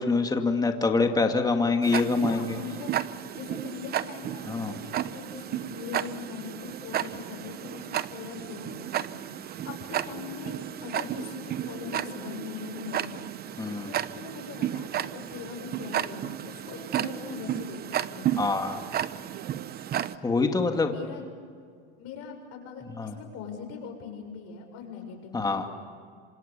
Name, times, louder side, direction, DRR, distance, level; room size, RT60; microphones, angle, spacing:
voice 1, 0.0-2.6 4.5-4.7 13.6-13.9 18.4-18.8 20.2-20.9 23.0-23.2 25.3-25.7, left 3 dB, 15° left, 4 dB, 2.4 m, -25 dB
Tick-tock, 1.8-20.2, right 11 dB, 30° right, 0.9 m, -33 dB
voice 2, 2.2-2.9 3.3-10.5 10.8-13.3 13.9-18.5 20.7-21.2 22.0-25.7, left 6 dB, 55° left, 3 dB, 7.2 m, -41 dB
28.0 x 26.0 x 7.0 m, 2.2 s
supercardioid pair, 125°, 30 cm